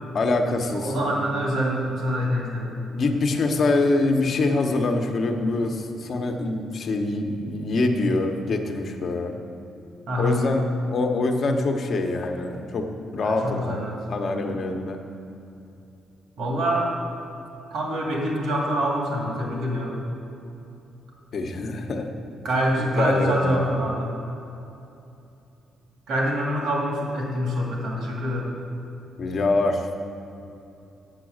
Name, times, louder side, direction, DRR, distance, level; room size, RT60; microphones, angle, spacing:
voice 1, 0.1-1.2 2.9-9.3 10.2-12.8 13.1-13.8 14.1-15.0 21.3-22.1 22.9-23.5 29.2-29.9, left 2 dB, 50° left, 4 dB, 1.0 m, -24 dB
voice 2, 0.7-2.7 10.1-10.4 13.2-14.0 16.4-16.9 17.7-20.0 22.4-24.1 26.1-28.5, equal, 75° right, -2 dB, 2.2 m, -25 dB
8.1 x 7.0 x 6.4 m, 2.8 s
cardioid pair, 90°, 0 cm